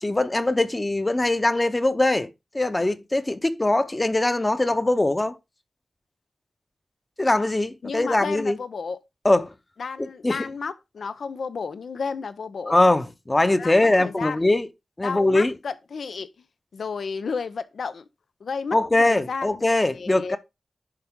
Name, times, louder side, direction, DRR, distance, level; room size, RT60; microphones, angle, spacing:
voice 1, 0.0-2.3 2.5-5.4 7.2-8.6 9.2-9.5 10.0-10.4 12.7-14.7 15.0-15.5 18.7-20.4, left 2 dB, 25° left, 0.7 m, -22 dB
voice 2, 7.8-9.0 9.8-12.8 13.6-14.5 15.0-16.4 16.7-18.0 18.4-19.6 19.9-20.4, left 5 dB, 85° left, 0.6 m, -32 dB
10.5 x 3.9 x 3.7 m
wide cardioid pair, 85°, 0 cm